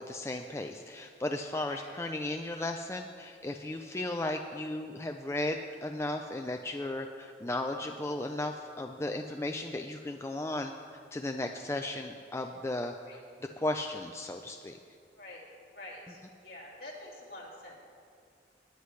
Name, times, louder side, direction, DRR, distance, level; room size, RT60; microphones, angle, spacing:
voice 1, 0.0-10.7 11.1-12.9 13.6-14.8, left 1 dB, 15° left, 4 dB, 0.4 m, -35 dB
voice 2, 15.7-17.7, left 1 dB, 55° left, -4 dB, 2.7 m, -47 dB
19.5 x 9.6 x 3.2 m, 2.3 s
head